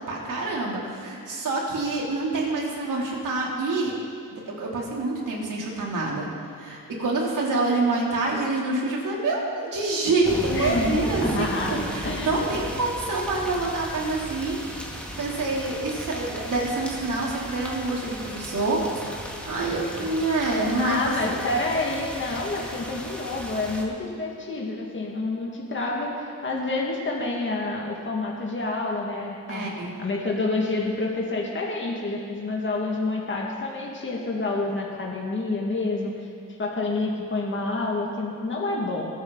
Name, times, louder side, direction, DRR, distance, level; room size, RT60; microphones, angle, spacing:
voice 1, 0.0-3.9 4.3-6.3 6.6-14.6 15.2-18.8 19.4-20.9 21.3-21.4 29.5-29.9, right 2 dB, 70° right, -3 dB, 3.2 m, -26 dB
sound 1, 10.2-23.8, equal, 5° left, 2.1 m, -35 dB
voice 2, 10.5-11.0 11.3-12.6 20.8-29.7 30.0-36.3 36.6-39.1, left 2 dB, 35° left, -2 dB, 2.0 m, -28 dB
21.0 x 8.7 x 4.0 m, 2.3 s
cardioid pair, 85°, 33 cm